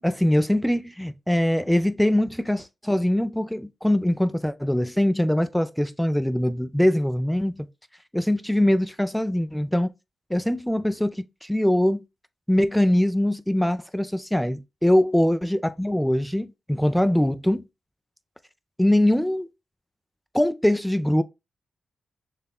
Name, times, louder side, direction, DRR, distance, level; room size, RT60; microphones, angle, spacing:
voice 1, 0.0-7.7 8.1-9.9 10.3-11.2 11.4-12.0 12.5-17.6 18.8-19.5 20.3-21.2, left 1 dB, 5° left, 0.4 m, -22 dB
6.6 x 2.2 x 2.3 m
supercardioid pair, 45°, 0 cm